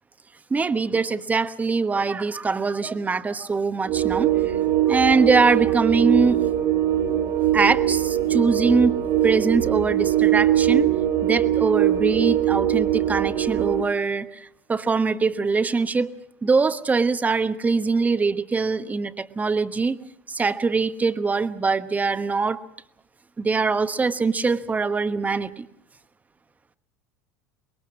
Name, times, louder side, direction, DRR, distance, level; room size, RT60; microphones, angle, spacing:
voice 1, 0.5-4.6 4.9-6.4 7.5-8.9 9.2-10.9 11.2-16.1 16.4-20.0 20.3-22.6 23.4-25.7, right 4 dB, 20° right, 11 dB, 1.2 m, -23 dB
sound 1, 3.9-13.8, right 12 dB, 50° right, 2.3 m, -21 dB
25.0 x 22.0 x 6.2 m, 0.75 s
hypercardioid pair, 75°, 9 cm